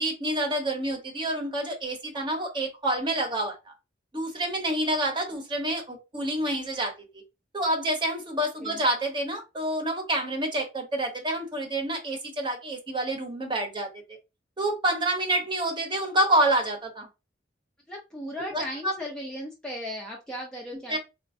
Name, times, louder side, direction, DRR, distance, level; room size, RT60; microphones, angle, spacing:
voice 1, 0.0-3.7 4.1-7.2 7.5-13.9 14.6-17.1 18.5-18.9 20.9-21.0, right 1 dB, 25° right, 0.8 m, -28 dB
voice 2, 17.9-21.0, left 1 dB, 5° left, 0.5 m, -36 dB
4.1 x 2.1 x 2.6 m
head